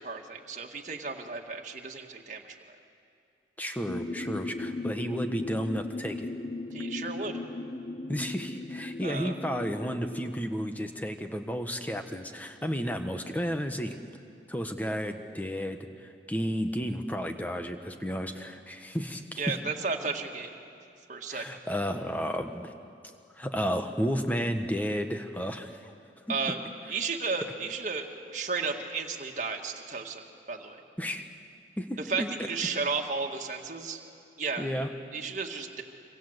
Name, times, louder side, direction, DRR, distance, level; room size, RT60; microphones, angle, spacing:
voice 1, 0.0-2.6 6.7-7.4 9.0-9.3 19.4-20.6 21.1-21.6 26.3-26.6 26.9-30.2 30.5-30.8 32.1-34.0 34.4-34.8 35.1-35.8, right 4 dB, 45° right, 2 dB, 2.0 m, -33 dB
voice 2, 3.6-6.3 8.1-14.0 14.5-19.6 21.3-22.7 23.3-25.9 26.3-26.4 31.0-31.3 31.8-32.3 34.6-34.9, equal, 10° left, 6 dB, 1.3 m, -32 dB
sound 1, 3.9-10.3, left 2 dB, 45° left, 0.8 m, -37 dB
26.5 x 25.5 x 8.2 m, 2.5 s
head